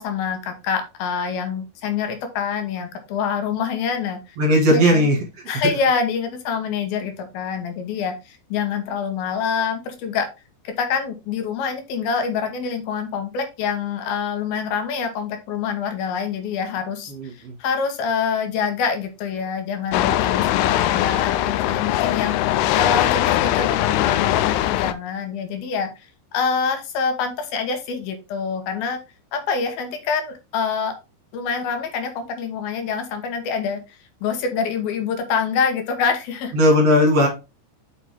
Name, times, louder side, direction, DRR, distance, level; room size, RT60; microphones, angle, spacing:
voice 1, 0.0-4.4 4.7-5.1 5.5-10.3 10.6-25.9 26.3-29.0 29.3-30.9 31.3-33.8 34.2-36.5, left 6 dB, 70° left, 6 dB, 2.6 m, -26 dB
voice 2, 4.4-5.2 17.1-17.5 36.5-37.3, equal, 50° right, 2 dB, 2.3 m, -17 dB
sound 1, 19.9-24.9, left 14 dB, 85° left, 2.3 m, -21 dB
6.6 x 5.8 x 3.6 m, 0.26 s
omnidirectional pair, 5.2 m